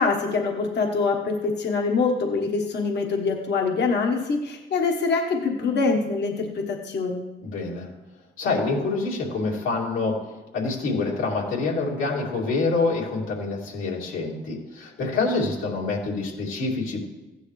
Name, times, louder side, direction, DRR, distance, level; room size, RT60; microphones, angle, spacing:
voice 1, 0.0-7.3, left 4 dB, 60° left, 1 dB, 1.4 m, -24 dB
voice 2, 7.4-7.9 8.4-10.2 10.5-17.0, left 3 dB, 85° left, -3 dB, 2.7 m, -26 dB
15.0 x 9.8 x 3.2 m, 1.1 s
cardioid pair, 90°, 20 cm